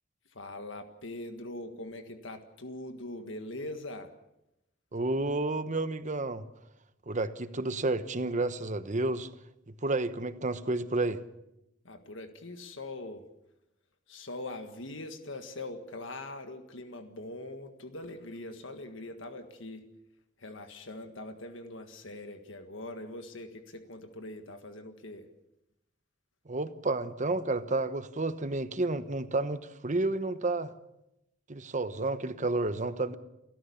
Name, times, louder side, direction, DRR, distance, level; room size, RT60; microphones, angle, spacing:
voice 1, 0.3-4.1 11.8-13.3 14.1-19.9 20.4-25.3, left 2 dB, 70° left, 1.7 m, -42 dB
voice 2, 4.9-6.4 7.1-9.3 9.8-11.2 26.5-30.7 31.5-33.2, right 2 dB, 40° right, 1.1 m, -31 dB
29.5 x 14.0 x 7.1 m
head